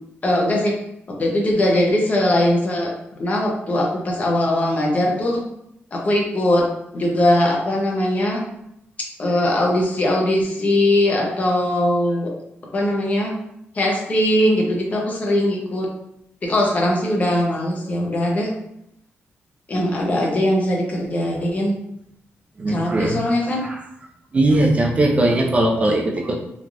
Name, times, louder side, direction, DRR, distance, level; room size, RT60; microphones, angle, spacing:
voice 1, 0.2-0.7 1.1-5.5 5.9-6.6 6.9-8.4 9.2-12.3 12.7-13.4 13.7-15.9 16.4-18.5 19.7-21.8 22.7-23.7, left 1 dB, 35° left, -1 dB, 0.6 m, -20 dB
voice 2, 22.6-23.3 23.6-23.8 24.3-26.4, right 1 dB, 30° right, 0 dB, 0.4 m, -19 dB
3.1 x 2.3 x 2.5 m, 0.79 s
wide cardioid pair, 130°, 4 cm